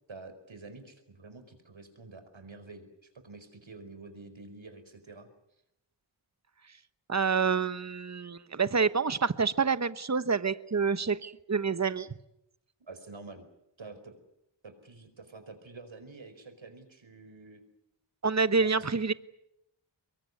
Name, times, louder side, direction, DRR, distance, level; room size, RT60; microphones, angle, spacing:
voice 1, 0.1-5.3 12.9-13.5 13.8-14.1 14.6-17.6 18.6-18.8, right 3 dB, 75° right, 9 dB, 4.8 m, -48 dB
voice 2, 7.1-12.2 18.2-19.1, right 5 dB, 35° right, 14 dB, 1.1 m, -27 dB
24.0 x 22.5 x 9.7 m, 0.83 s
cardioid pair, 45°, 47 cm